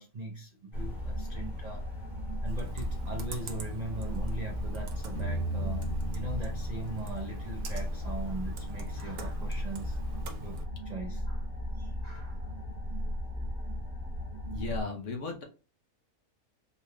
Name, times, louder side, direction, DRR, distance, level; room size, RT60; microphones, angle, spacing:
voice 1, 0.0-1.9 2.4-10.0 10.4-11.5 11.7-12.5, right 2 dB, 80° right, 0.3 m, -40 dB
sound 1, 0.7-14.8, left 1 dB, 30° left, 1.4 m, -36 dB
Computer keyboard, 2.5-10.7, right 2 dB, 65° right, 1.1 m, -44 dB
sound 2, 5.1-8.1, right 2 dB, 15° left, 1.1 m, -37 dB
voice 2, 14.5-15.4, left 4 dB, 55° left, 1.1 m, -36 dB
3.9 x 3.1 x 2.2 m
omnidirectional pair, 1.7 m